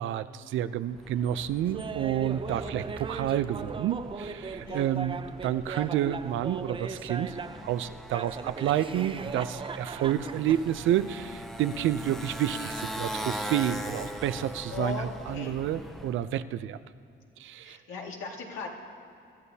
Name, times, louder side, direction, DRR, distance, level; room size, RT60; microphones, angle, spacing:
voice 1, 0.0-16.8 17.4-17.8, right 11 dB, 75° right, 13 dB, 0.5 m, -29 dB
Motorcycle, 0.9-16.3, equal, ahead, 0.9 m, -41 dB
Laughter, 1.7-7.7 8.1-10.7, right 5 dB, 25° right, 0.5 m, -38 dB
voice 2, 2.5-2.8 4.7-4.9 14.7-15.6 17.6-18.7, left 4 dB, 80° left, -1 dB, 2.1 m, -38 dB
23.0 x 13.0 x 2.8 m, 2.5 s
cardioid pair, 90°, 20 cm